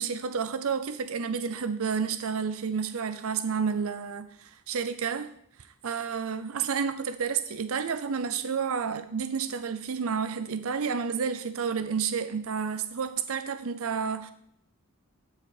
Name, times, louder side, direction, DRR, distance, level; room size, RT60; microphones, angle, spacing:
voice 1, 0.0-5.4 5.8-14.3, right 6 dB, 70° right, 11 dB, 0.5 m, -30 dB
13.5 x 4.8 x 4.8 m, 0.69 s
head